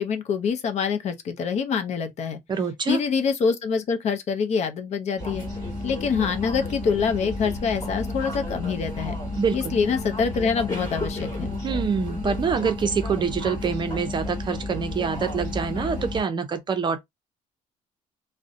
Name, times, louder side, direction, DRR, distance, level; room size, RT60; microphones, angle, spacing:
voice 1, 0.0-2.4 2.9-5.5 5.8-9.2 9.5-11.5, left 6 dB, 50° left, 0.6 m, -25 dB
voice 2, 2.5-3.0 9.4-9.8 11.6-17.0, right 6 dB, 30° right, 0.5 m, -26 dB
sound 1, 5.2-16.2, left 2 dB, 25° left, 1.4 m, -32 dB
2.6 x 2.1 x 2.5 m
cardioid pair, 135°, 15 cm